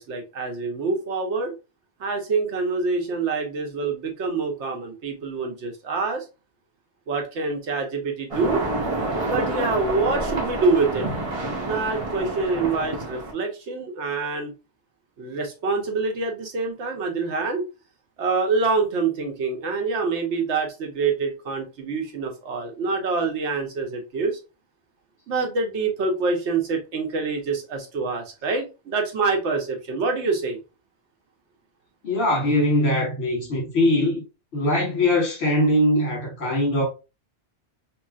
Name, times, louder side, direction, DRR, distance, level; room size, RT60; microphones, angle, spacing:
voice 1, 0.0-1.5 2.0-6.2 7.1-8.6 9.3-11.1 11.6-14.5 15.2-17.7 18.2-24.4 25.3-30.6, right 4 dB, 80° right, 1.1 m, -26 dB
sound 1, 8.3-13.3, right 2 dB, 35° right, 0.8 m, -28 dB
voice 2, 32.0-34.2 34.5-36.8, left 1 dB, 65° left, 1.5 m, -21 dB
3.0 x 2.8 x 2.3 m
omnidirectional pair, 1.2 m